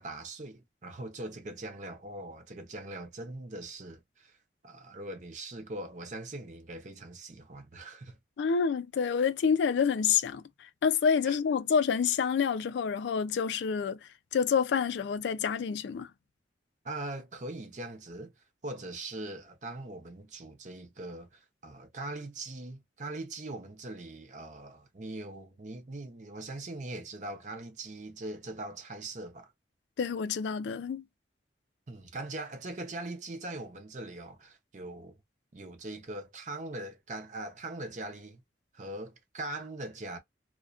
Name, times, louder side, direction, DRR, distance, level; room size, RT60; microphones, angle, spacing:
voice 1, 0.0-4.4 4.6-8.2 11.2-11.4 16.8-29.5 31.9-35.2 35.5-38.4 38.7-40.2, right 2 dB, 40° right, 0.6 m, -41 dB
voice 2, 8.4-16.1 30.0-31.0, left 6 dB, 70° left, 0.3 m, -28 dB
2.3 x 2.2 x 2.4 m
head